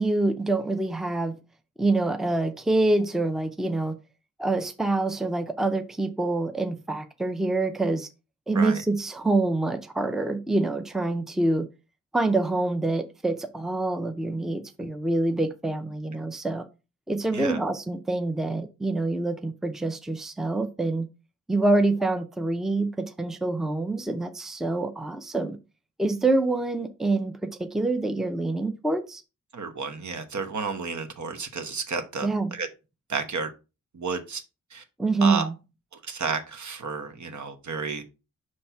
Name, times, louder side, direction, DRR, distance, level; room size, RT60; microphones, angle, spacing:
voice 1, 0.0-1.3 1.8-4.0 4.4-8.1 8.5-11.7 12.1-16.6 17.1-21.1 21.5-25.6 26.0-29.2 32.2-32.6 35.0-35.5, right 2 dB, ahead, 0.5 m, -26 dB
voice 2, 29.5-32.7 33.1-33.5 33.9-34.4 34.7-34.8 35.2-35.5 36.0-38.0, right 5 dB, 70° right, 1.1 m, -31 dB
5.8 x 3.2 x 5.7 m
wide cardioid pair, 155°, 30 cm